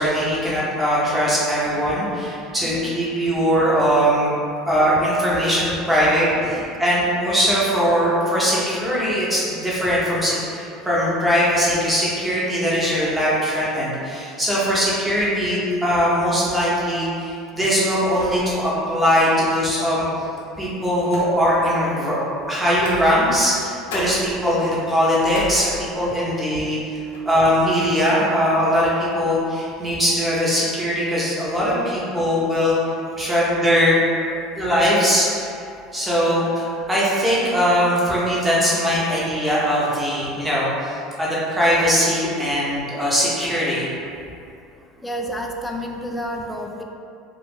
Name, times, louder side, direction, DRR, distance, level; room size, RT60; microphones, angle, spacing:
voice 1, 0.0-4.3 4.7-20.1 20.6-22.2 22.5-27.0 27.2-32.7 33.2-34.3 34.6-35.5 35.9-43.9, equal, 15° right, -7 dB, 1.0 m, -20 dB
voice 2, 2.6-3.0 6.5-6.6 45.0-46.8, equal, 10° left, 1 dB, 0.4 m, -30 dB
sound 1, 18.1-18.8 19.2-19.3 20.2-21.7 22.7-23.6 23.9-26.2 26.6-26.8 27.1-27.5, equal, 85° left, 0.5 m, -36 dB
2.5 x 2.4 x 3.5 m, 2.5 s
hypercardioid pair, 90°, 0 cm